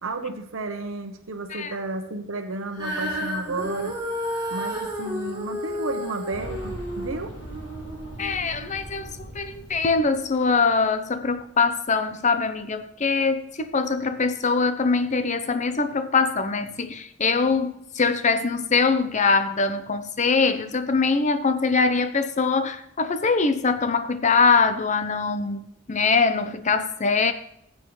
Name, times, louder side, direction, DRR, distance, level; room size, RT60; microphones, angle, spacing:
voice 1, 0.0-4.0 4.5-7.4, right 2 dB, 85° right, 1.1 m, -32 dB
Female singing, 2.7-9.1 9.8-9.9, equal, 20° right, 4.2 m, -32 dB
Boom, 6.3-11.1 11.3-11.4 12.5-12.6, equal, 80° left, 4.3 m, -40 dB
voice 2, 8.2-27.3, left 4 dB, 35° left, 0.7 m, -23 dB
18.0 x 7.8 x 3.2 m
head